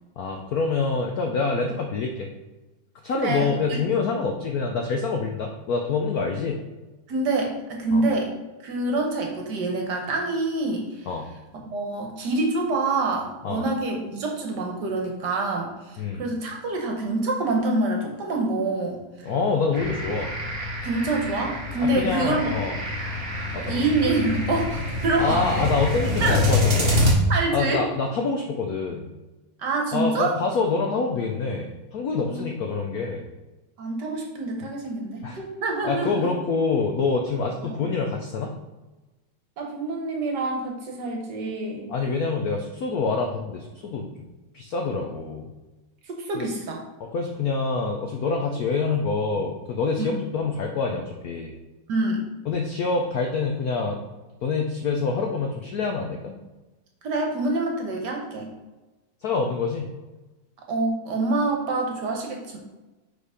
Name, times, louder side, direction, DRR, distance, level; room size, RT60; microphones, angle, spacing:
voice 1, 0.2-2.3 3.0-6.6 7.9-8.0 11.1-11.3 13.4-13.7 16.0-16.2 19.3-20.3 21.8-22.7 23.5-23.8 25.2-26.9 27.5-29.0 29.9-33.3 35.2-35.4 35.8-38.5 41.9-44.1 44.5-45.5 46.3-46.5 47.0-51.5 52.5-54.0 54.4-56.3 59.2-59.9, left 4 dB, 75° left, 2 dB, 0.8 m, -26 dB
voice 2, 3.1-3.8 7.1-8.3 8.6-11.1 11.6-19.3 20.8-22.5 23.5-25.7 26.2-26.4 27.3-27.8 29.6-30.4 32.2-32.5 33.8-36.3 37.6-37.8 39.6-41.9 46.2-46.8 50.0-50.2 51.9-52.3 57.0-58.5 60.7-62.6, right 2 dB, 60° right, 1 dB, 1.4 m, -26 dB
sound 1, 19.7-27.1, left 2 dB, 40° right, 0.9 m, -26 dB
5.0 x 4.2 x 4.8 m, 1.1 s
omnidirectional pair, 2.3 m